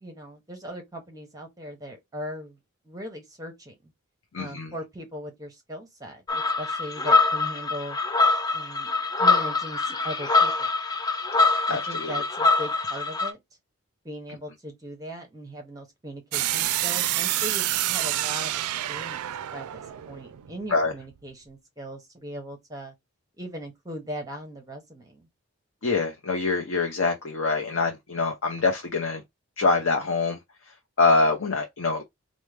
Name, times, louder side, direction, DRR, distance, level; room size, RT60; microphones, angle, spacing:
voice 1, 0.0-2.6 2.8-3.9 4.4-8.0 8.5-8.9 9.2-10.7 11.7-13.4 14.0-18.5 18.9-19.3 19.5-22.9 23.4-25.3, equal, 15° right, 0.6 m, -39 dB
voice 2, 4.3-4.7 11.7-12.1 20.7-20.9 25.8-29.2 29.6-30.4 31.0-32.0, left 3 dB, 60° left, 0.7 m, -24 dB
sound 1, 6.3-13.3, left 3 dB, 15° left, 0.3 m, -24 dB
sound 2, 16.3-21.2, right 14 dB, 85° right, 0.3 m, -28 dB
4.5 x 2.1 x 3.2 m
head